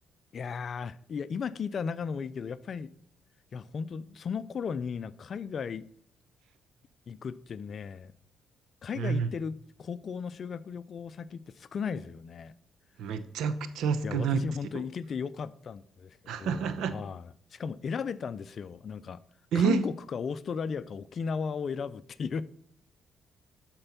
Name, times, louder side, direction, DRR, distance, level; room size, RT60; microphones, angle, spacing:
voice 1, 0.3-2.9 3.5-5.9 7.1-8.1 8.8-12.5 14.0-19.2 19.5-22.5, left 6 dB, 50° left, 0.5 m, -36 dB
voice 2, 8.9-9.3 13.0-14.4 16.3-16.9 19.5-19.8, right 6 dB, 80° right, 0.8 m, -28 dB
12.0 x 4.5 x 5.8 m
cardioid pair, 90°, 0 cm